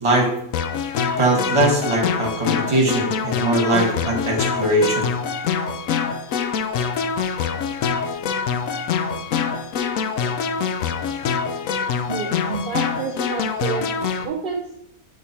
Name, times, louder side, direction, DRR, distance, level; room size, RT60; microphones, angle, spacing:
voice 1, 0.0-0.3 1.2-5.1, right 1 dB, 20° right, 0 dB, 1.3 m, -20 dB
sound 1, 0.5-14.3, left 6 dB, 70° left, 0.9 m, -25 dB
voice 2, 12.1-13.9 14.2-14.6, right 5 dB, 50° right, -1 dB, 0.6 m, -28 dB
8.5 x 3.3 x 4.2 m, 0.75 s
omnidirectional pair, 1.5 m